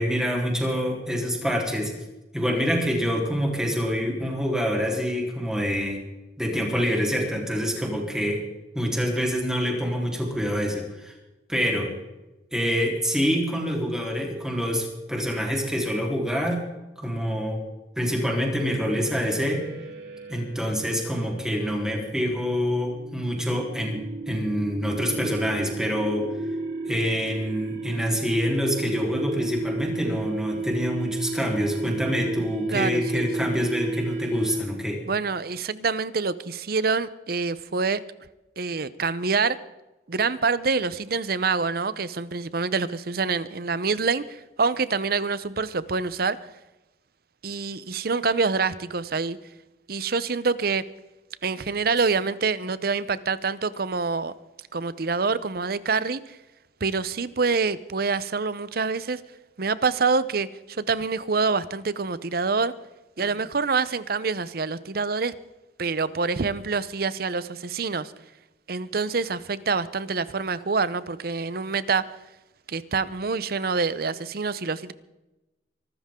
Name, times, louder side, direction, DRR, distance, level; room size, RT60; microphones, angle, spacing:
voice 1, 0.0-2.0 2.3-6.0 6.4-8.4 8.7-11.1 11.5-11.9 12.5-16.6 17.0-17.6 18.0-19.7 20.3-26.3 26.8-35.0, equal, 5° right, -1 dB, 3.9 m, -26 dB
sound 1, 18.9-34.9, right 3 dB, 80° right, 3.8 m, -33 dB
voice 2, 32.7-33.5 35.1-38.0 38.6-39.6 40.1-46.4 47.4-49.4 49.9-50.8 51.4-54.3 54.7-56.4 56.8-59.2 59.6-62.7 63.2-65.3 65.8-68.1 68.7-72.0 72.7-74.9, right 4 dB, 60° right, 16 dB, 0.8 m, -26 dB
24.5 x 13.0 x 3.8 m, 1.0 s
head